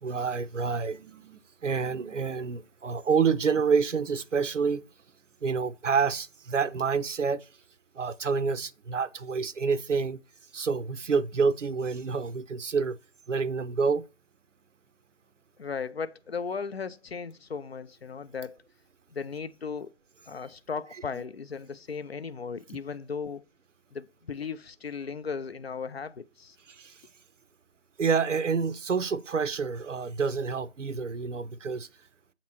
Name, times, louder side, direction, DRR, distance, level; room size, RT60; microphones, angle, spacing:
voice 1, 0.0-4.8 5.4-7.5 7.9-10.2 10.5-13.0 13.3-14.0 26.7-27.0 28.0-31.9, right 5 dB, 80° right, 0.6 m, -28 dB
voice 2, 15.6-18.6 19.1-19.9 20.3-23.4 23.9-26.6, left 5 dB, 55° left, 0.5 m, -36 dB
7.4 x 2.9 x 4.3 m
figure-of-eight pair, 150°, 36 cm